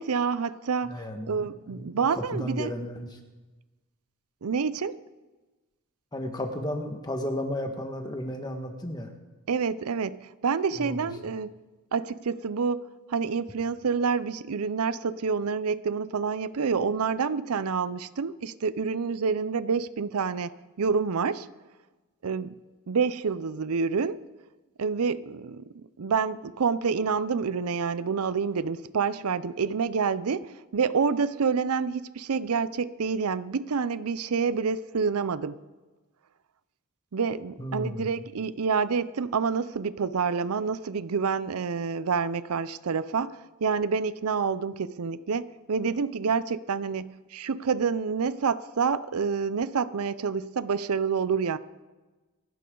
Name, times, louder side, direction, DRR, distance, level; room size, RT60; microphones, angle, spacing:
voice 1, 0.0-2.7 4.4-5.0 9.5-11.5 11.9-20.5 20.8-21.5 22.2-22.6 22.9-24.2 24.8-25.6 26.0-35.6 37.1-51.6, right 5 dB, 80° right, 16 dB, 0.5 m, -28 dB
voice 2, 0.9-3.2 6.1-9.1 10.8-11.1 37.6-38.1, left 1 dB, 20° left, 4 dB, 1.5 m, -34 dB
26.0 x 12.0 x 3.9 m, 1.2 s
head